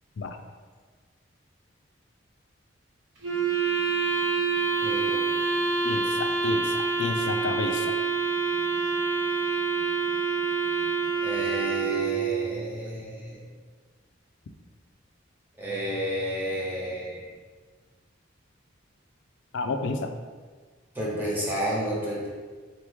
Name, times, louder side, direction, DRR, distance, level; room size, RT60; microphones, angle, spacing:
Wind instrument woodwind instrument, 3.2-12.5, right 5 dB, 70° right, 0.7 m, -26 dB
voice 1, 4.8-5.2 11.2-13.5 15.6-17.3 20.9-22.3, equal, 10° right, -5 dB, 0.8 m, -31 dB
voice 2, 5.8-7.9 19.5-20.1, left 3 dB, 60° left, 6 dB, 0.4 m, -30 dB
4.2 x 3.0 x 3.4 m, 1.5 s
head